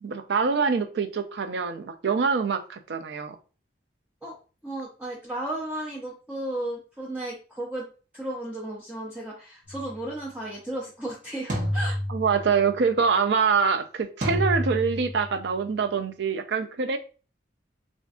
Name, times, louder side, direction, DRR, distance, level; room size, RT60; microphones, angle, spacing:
voice 1, 0.0-3.4 12.1-17.0, right 5 dB, 75° right, 8 dB, 0.4 m, -25 dB
voice 2, 4.6-7.9 8.1-12.0, right 1 dB, 10° right, -5 dB, 0.5 m, -34 dB
sound 1, 9.7-10.0 11.5-12.7 14.2-15.4, equal, 45° right, 1.0 m, -29 dB
3.6 x 2.5 x 2.4 m, 0.36 s
head